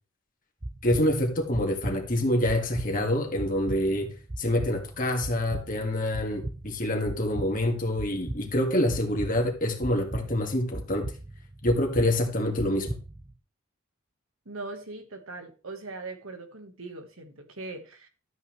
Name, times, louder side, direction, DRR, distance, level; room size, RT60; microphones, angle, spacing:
sound 1, 0.6-13.3, right 1 dB, 20° right, 0.5 m, -39 dB
voice 1, 0.8-4.1 4.4-11.1 11.6-12.9, left 1 dB, 40° left, 3 dB, 2.0 m, -26 dB
voice 2, 14.4-18.1, right 3 dB, 75° right, 6 dB, 1.6 m, -40 dB
12.5 x 8.3 x 3.3 m, 0.36 s
head